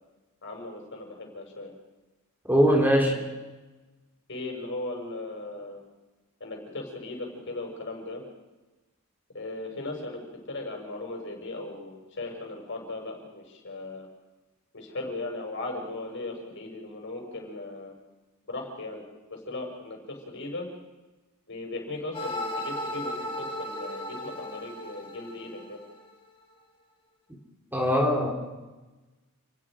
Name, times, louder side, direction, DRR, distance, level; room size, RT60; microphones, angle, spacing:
voice 1, 0.4-1.7 3.0-3.2 4.3-5.8 6.4-8.2 9.3-14.1 14.7-17.9 18.5-19.0 19.3-20.7 21.5-25.8, left 2 dB, 55° left, 1 dB, 6.1 m, -37 dB
voice 2, 2.5-3.2 27.7-28.3, equal, 10° right, 0 dB, 3.3 m, -21 dB
sound 1, 22.1-26.1, left 1 dB, 25° left, 3.4 m, -36 dB
29.5 x 20.5 x 5.1 m, 1.2 s
head